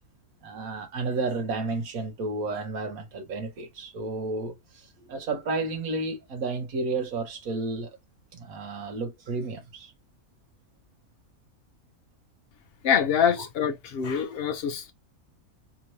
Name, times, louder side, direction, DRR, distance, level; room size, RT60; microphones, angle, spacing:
voice 1, 0.4-7.9 8.3-9.9 13.4-13.5, right 3 dB, 75° right, 1.4 m, -32 dB
voice 2, 12.8-14.9, left 8 dB, 50° left, 0.8 m, -25 dB
3.5 x 3.1 x 2.7 m
omnidirectional pair, 1.5 m